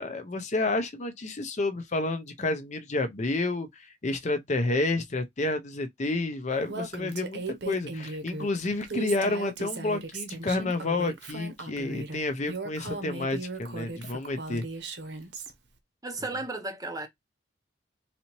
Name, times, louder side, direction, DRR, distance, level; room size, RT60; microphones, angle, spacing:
voice 1, 0.0-14.6, left 2 dB, 40° left, 0.6 m, -30 dB
Female speech woman speaking, 6.7-15.5, right 3 dB, 65° right, 0.8 m, -37 dB
voice 2, 16.0-17.1, right 2 dB, 20° right, 0.7 m, -34 dB
4.1 x 2.7 x 2.9 m
head